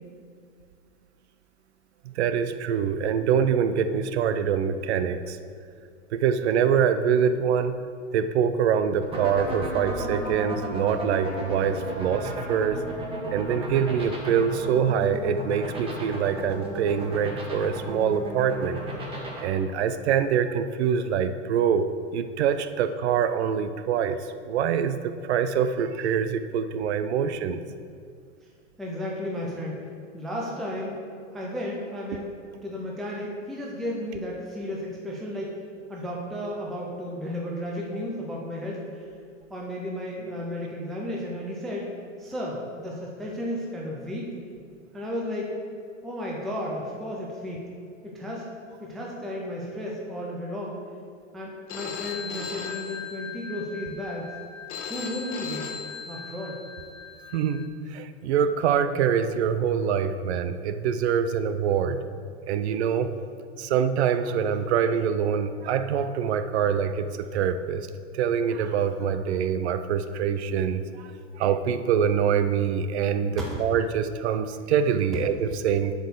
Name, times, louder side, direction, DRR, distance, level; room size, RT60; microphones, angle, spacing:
voice 1, 2.0-5.4 6.1-7.7 8.1-12.8 13.3-18.8 19.4-21.9 22.1-24.2 24.5-27.6 57.3-62.0 62.4-63.1 63.6-67.1 67.3-67.9 68.1-71.1 71.4-75.9, right 7 dB, 60° right, 10 dB, 0.6 m, -25 dB
sound 1, 9.0-19.4, right 1 dB, 15° right, 1.6 m, -33 dB
voice 2, 28.8-29.8 30.1-31.0 31.3-32.3 32.6-35.5 35.9-39.0 39.5-41.9 42.2-44.3 44.9-45.6 46.0-47.7 48.0-48.5 48.8-50.9 51.3-54.3 54.9-55.8 56.1-56.6 73.5-73.6, left 1 dB, ahead, -3 dB, 0.3 m, -33 dB
Telephone, 51.7-57.7, left 6 dB, 65° left, 1.2 m, -37 dB
7.8 x 4.5 x 6.8 m, 2.2 s
hypercardioid pair, 130°, 38 cm